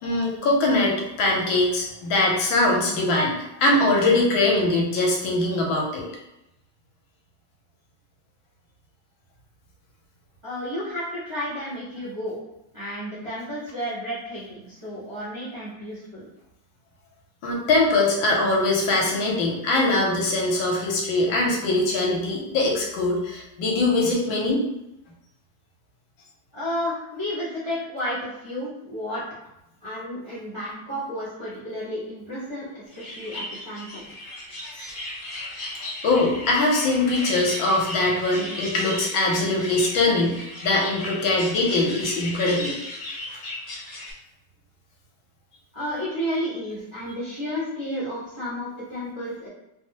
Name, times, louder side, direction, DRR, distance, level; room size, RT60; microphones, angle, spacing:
voice 1, 0.0-6.1 17.4-24.6 36.0-42.7, left 2 dB, 80° left, -1 dB, 1.4 m, -22 dB
voice 2, 10.4-12.4 12.7-16.2 26.5-29.2 29.8-34.0 45.7-49.5, equal, 50° right, -11 dB, 0.3 m, -32 dB
sound 1, 32.9-44.1, left 1 dB, 55° left, 1.1 m, -36 dB
3.2 x 2.0 x 2.7 m, 0.88 s
omnidirectional pair, 2.2 m